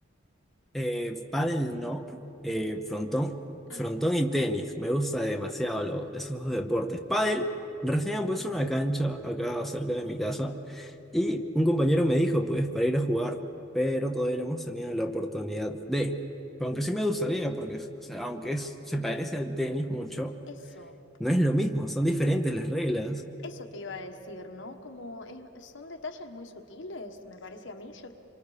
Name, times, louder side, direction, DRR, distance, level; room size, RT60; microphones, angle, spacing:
voice 1, 0.7-2.2 2.4-3.4 3.7-7.5 7.8-13.4 13.7-16.2 16.6-20.4 21.2-23.2, equal, ahead, 3 dB, 0.7 m, -28 dB
voice 2, 20.5-21.0 23.4-28.1, left 2 dB, 70° left, 4 dB, 1.4 m, -42 dB
26.5 x 24.5 x 5.0 m, 3.0 s
head